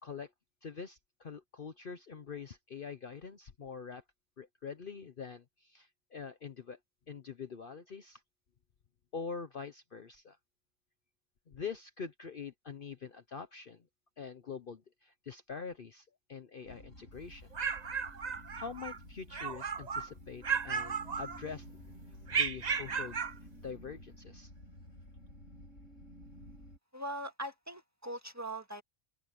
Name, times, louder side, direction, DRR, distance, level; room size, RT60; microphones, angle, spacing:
voice 1, 0.6-4.0 4.4-6.8 7.1-8.2 9.1-10.4 11.5-13.8 14.2-17.5 18.6-21.7 22.3-23.2 23.6-24.5, left 6 dB, 45° left, 1.0 m, -44 dB
sound 1, 16.6-26.8, equal, 65° left, 8.1 m, -52 dB
sound 2, 17.3-19.0 19.3-20.1 20.4-21.7 22.3-23.4, right 6 dB, 35° right, 0.8 m, -35 dB
voice 2, 26.9-28.8, right 1 dB, 10° right, 1.9 m, -41 dB
open air
omnidirectional pair, 1.4 m